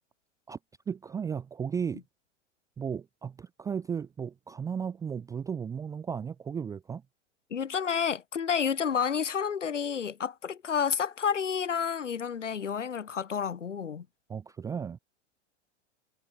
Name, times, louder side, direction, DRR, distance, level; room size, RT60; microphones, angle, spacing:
voice 1, 0.9-2.0 2.8-7.0 14.3-15.0, right 7 dB, 10° right, 0.4 m, -35 dB
voice 2, 7.5-14.1, left 7 dB, 85° left, 0.9 m, -30 dB
figure-of-eight pair, 100°, 36 cm